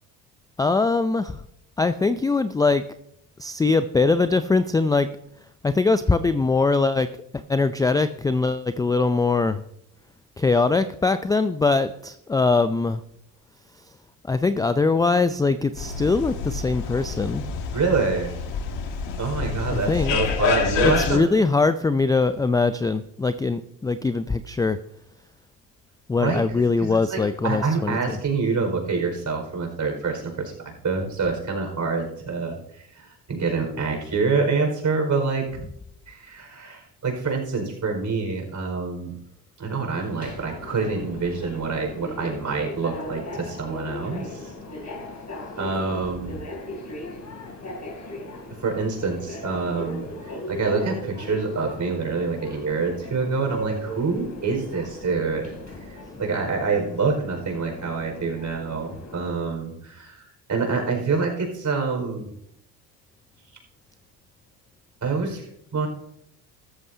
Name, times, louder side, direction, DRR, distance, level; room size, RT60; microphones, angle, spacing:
voice 1, 0.6-1.4 1.8-2.8 3.4-5.1 5.6-9.6 10.4-13.0 14.2-17.4 19.7-20.2 20.8-24.8 26.1-28.2, left 3 dB, 10° left, 13 dB, 0.3 m, -22 dB
sound 1, 15.8-21.2, left 5 dB, 60° left, 2.0 m, -28 dB
voice 2, 17.7-18.3 19.2-21.3 26.2-35.5 36.1-39.1 39.6-44.5 45.6-46.4 48.5-50.1 50.5-55.5 55.8-60.2 60.5-62.3 65.0-65.9, right 4 dB, 40° right, 2 dB, 5.0 m, -26 dB
Subway metro underground, 39.9-59.3, left 1 dB, 35° left, 2.9 m, -38 dB
14.0 x 13.5 x 2.8 m, 0.74 s
hypercardioid pair, 65°, 48 cm